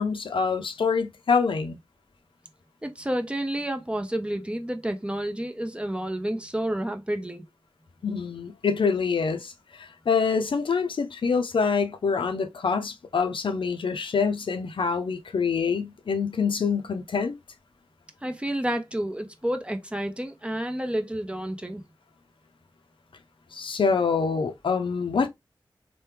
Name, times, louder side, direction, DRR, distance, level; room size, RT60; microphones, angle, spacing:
voice 1, 0.0-1.8 8.0-9.5 9.8-17.3 23.5-25.3, left 5 dB, 75° left, 0.4 m, -25 dB
voice 2, 2.8-7.5 18.2-21.8, right 1 dB, 10° right, 0.6 m, -30 dB
3.2 x 2.1 x 3.1 m
cardioid pair, 40°, 9 cm